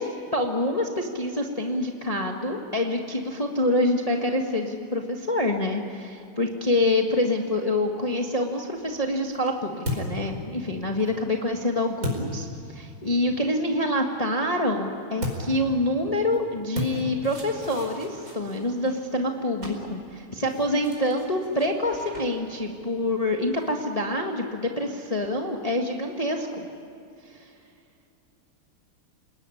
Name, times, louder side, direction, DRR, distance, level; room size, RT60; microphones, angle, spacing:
voice 1, 0.0-26.7, left 1 dB, 20° left, 2 dB, 1.6 m, -26 dB
sound 1, 8.7-13.1 15.2-24.0, left 1 dB, 35° right, 5.4 m, -37 dB
28.5 x 19.5 x 10.0 m, 2.7 s
omnidirectional pair, 2.4 m